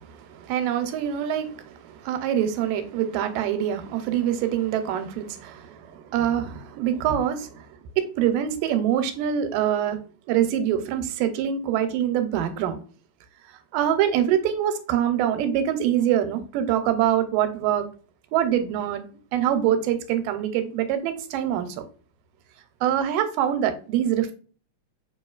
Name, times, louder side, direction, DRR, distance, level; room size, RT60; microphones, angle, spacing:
voice 1, 0.0-10.0 10.3-12.8 13.7-17.9 18.3-19.0 19.3-21.9 22.8-24.3, right 10 dB, 85° right, 2.3 m, -24 dB
6.8 x 3.0 x 2.3 m
omnidirectional pair, 3.8 m